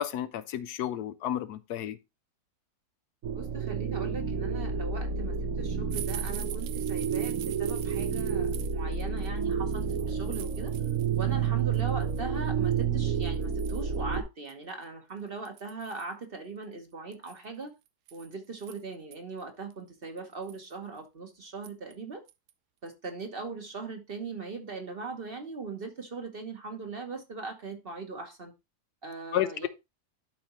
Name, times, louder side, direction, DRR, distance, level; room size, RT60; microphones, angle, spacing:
voice 1, 0.0-2.0 29.3-29.5, left 11 dB, 80° left, 1.2 m, -31 dB
sound 1, 3.2-14.2, right 6 dB, 60° right, 1.1 m, -30 dB
voice 2, 3.3-10.7 11.2-17.7 18.1-22.2 22.8-28.5 29.0-29.7, right 4 dB, 40° right, 1.2 m, -40 dB
sound 2, 5.9-11.3 11.6-12.2 12.8-12.9 13.2-14.0 14.5-14.6 14.8-14.9 15.4-16.1 17.1-19.2 19.7-19.8 20.2-20.7 21.6-21.9 22.3-22.5 22.9-23.0, right 12 dB, 85° right, 1.2 m, -44 dB
12.0 x 4.3 x 3.0 m
omnidirectional pair, 1.7 m